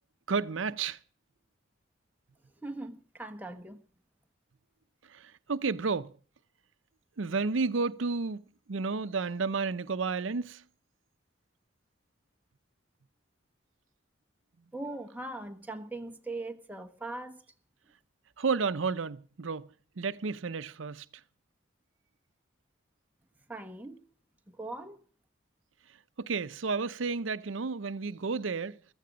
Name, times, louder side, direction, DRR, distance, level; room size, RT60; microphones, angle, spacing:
voice 1, 0.3-1.0 5.1-6.1 7.2-8.4 8.7-10.6 18.4-19.7 20.0-21.1 26.2-28.8, right 4 dB, 85° right, 0.7 m, -31 dB
voice 2, 2.6-3.8 14.7-17.4 23.5-24.0 24.5-25.0, right 2 dB, 10° right, 1.3 m, -40 dB
15.5 x 13.5 x 5.1 m
head